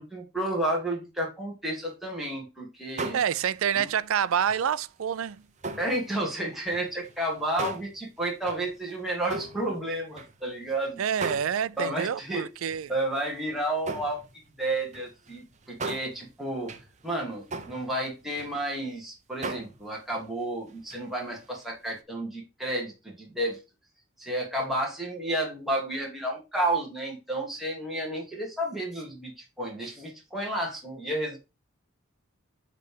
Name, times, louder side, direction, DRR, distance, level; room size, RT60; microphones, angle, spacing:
voice 1, 0.0-3.2 3.8-3.9 5.8-11.0 11.8-12.5 12.9-14.2 14.6-16.7 17.0-23.6 24.2-29.3 29.6-31.4, right 1 dB, ahead, 1.9 m, -31 dB
sound 1, 3.0-4.0 4.4-6.2 6.5-10.8 11.2-12.0 12.6-19.0 19.4-21.1 21.3-21.6 22.0-22.1, right 3 dB, 35° right, 0.7 m, -39 dB
voice 2, 3.1-5.4 11.0-12.9, right 8 dB, 80° right, 0.4 m, -27 dB
7.5 x 3.3 x 5.1 m
head